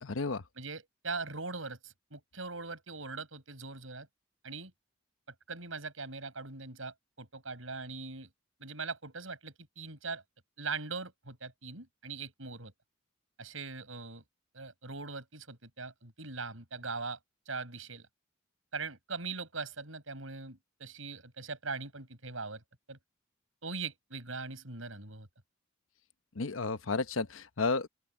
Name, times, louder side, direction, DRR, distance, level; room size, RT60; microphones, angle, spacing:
voice 1, 0.0-0.4 26.4-27.9, left 3 dB, 80° left, 0.9 m, -32 dB
voice 2, 0.6-4.1 4.4-4.7 5.5-8.3 8.6-10.2 10.6-12.7 13.4-14.2 14.5-17.2 17.5-18.1 18.7-22.6 22.9-23.0 23.6-25.3, right 4 dB, 80° right, 6.9 m, -41 dB
open air
head